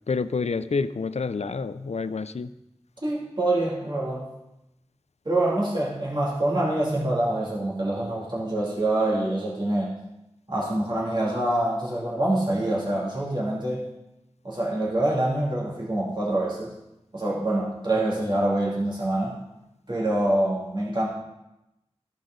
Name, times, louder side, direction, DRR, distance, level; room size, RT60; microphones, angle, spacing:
voice 1, 0.1-2.5, left 4 dB, 75° left, 13 dB, 0.4 m, -28 dB
voice 2, 3.0-4.3 5.2-9.9 10.5-13.9 14.4-16.8 17.1-19.4 19.9-21.1, right 1 dB, 45° right, -5 dB, 2.5 m, -25 dB
14.5 x 5.2 x 3.8 m, 0.90 s
wide cardioid pair, 45°, 11 cm